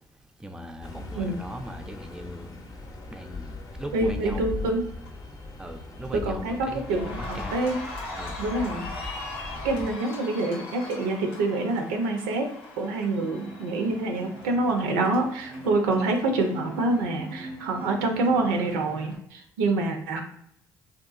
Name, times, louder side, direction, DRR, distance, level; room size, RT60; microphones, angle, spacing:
voice 1, 0.4-2.6 3.1-3.5 3.8-4.4 5.6-7.6 8.1-8.4, equal, 5° right, 0.4 m, -39 dB
sound 1, 0.8-9.9, left 3 dB, 35° left, 0.6 m, -39 dB
voice 2, 3.9-4.9 6.1-7.8 8.4-9.1 9.6-12.5 12.8-20.2, right 2 dB, 80° right, 0.4 m, -26 dB
Cheering, 4.5-4.7 5.1-19.2, left 1 dB, 75° left, 0.7 m, -40 dB
2.8 x 2.3 x 2.3 m
hypercardioid pair, 50°, 10 cm